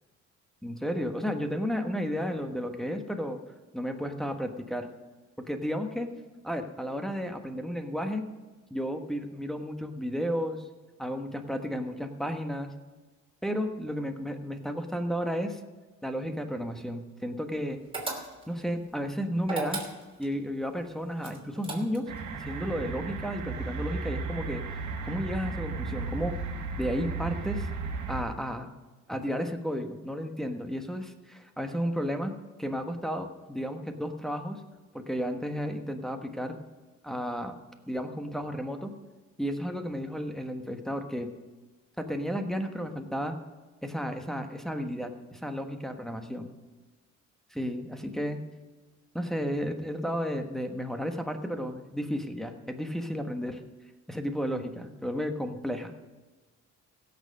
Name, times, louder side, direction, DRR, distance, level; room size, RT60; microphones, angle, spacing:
voice 1, 0.6-3.4 3.7-4.9 5.4-6.1 6.4-8.2 8.7-10.6 11.0-12.7 13.4-15.6 16.0-17.8 18.5-19.8 20.2-26.3 26.8-27.7 28.1-28.7 29.1-32.3 32.6-34.6 34.9-36.6 37.0-37.5 37.9-38.9 39.4-41.3 42.0-43.4 43.8-46.5 47.5-48.4 49.1-53.6 54.1-55.9, equal, ahead, 4 dB, 1.3 m, -33 dB
sound 1, 17.9-18.6 19.4-20.3 21.2-22.2, right 3 dB, 20° right, 3.0 m, -35 dB
sound 2, 22.1-28.2, right 4 dB, 75° right, 1.6 m, -35 dB
16.0 x 6.8 x 6.4 m, 1.3 s
cardioid pair, 90°, 30 cm